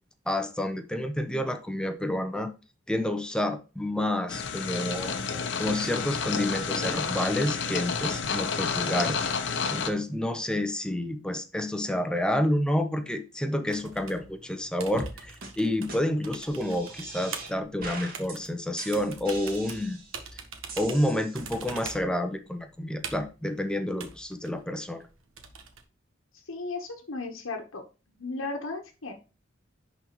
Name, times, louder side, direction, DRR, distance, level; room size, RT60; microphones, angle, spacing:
voice 1, 0.3-2.5 2.9-5.2 5.6-20.0 20.3-20.4 20.8-25.0, left 1 dB, 5° left, 0.7 m, -29 dB
sound 1, 4.3-9.9, left 5 dB, 60° left, 0.8 m, -30 dB
sound 2, 13.6-25.8, right 5 dB, 85° right, 1.1 m, -43 dB
sound 3, 14.9-15.1 15.4-15.5 15.9-16.0 16.4-17.5 17.8-18.4 18.8-20.2 20.7-21.6, right 2 dB, 45° right, 2.1 m, -41 dB
voice 2, 26.5-27.8 28.2-29.1, left 3 dB, 90° left, 1.1 m, -35 dB
10.5 x 4.1 x 3.0 m
head